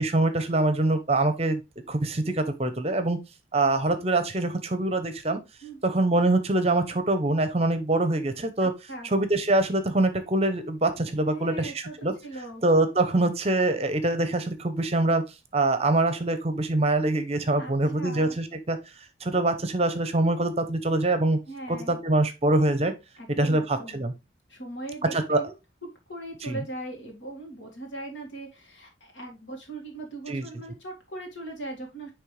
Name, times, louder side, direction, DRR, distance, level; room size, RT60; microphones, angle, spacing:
voice 1, 0.0-1.6 1.9-3.2 3.5-5.4 5.8-8.7 9.1-12.1 12.6-15.2 15.5-18.8 19.2-21.4 21.7-22.9 23.4-24.1 25.1-25.4 26.4-26.6 30.3-30.4, right 2 dB, 30° right, 0.7 m, -24 dB
voice 2, 5.6-6.0 8.6-9.1 11.3-12.6 17.6-18.4 21.5-22.0 23.2-24.0 24.5-32.1, right 2 dB, 70° left, 2.0 m, -40 dB
9.5 x 3.3 x 3.2 m
head